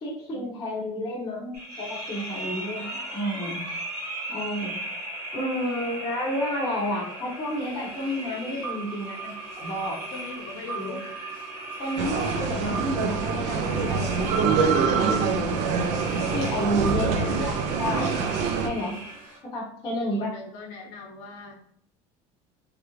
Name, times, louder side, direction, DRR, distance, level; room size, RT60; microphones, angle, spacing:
voice 1, 0.0-3.6 4.3-4.8 5.3-10.0 10.8-11.0 11.8-15.9 16.3-18.1 18.6-19.0 19.5-20.3, equal, 25° left, -7 dB, 0.7 m, -31 dB
sound 1, 1.5-19.4, right 2 dB, 15° right, 1.3 m, -37 dB
voice 2, 10.1-11.0 17.0-17.7 20.0-21.5, left 4 dB, 85° left, 1 dB, 0.8 m, -40 dB
sound 2, 12.0-18.7, right 5 dB, 50° right, 0.4 m, -25 dB
3.2 x 2.4 x 3.0 m, 0.65 s
cardioid pair, 160°, 15 cm